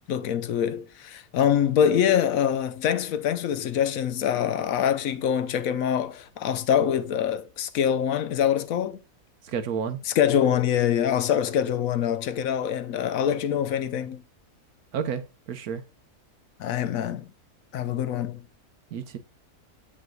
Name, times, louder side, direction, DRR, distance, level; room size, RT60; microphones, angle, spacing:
voice 1, 0.1-9.0 10.2-14.2 16.6-17.3 17.7-18.4, left 9 dB, 70° left, 1.0 m, -24 dB
voice 2, 9.4-10.0 14.9-15.8 18.9-19.2, right 7 dB, 75° right, 1.3 m, -31 dB
7.5 x 6.1 x 2.3 m
omnidirectional pair, 1.6 m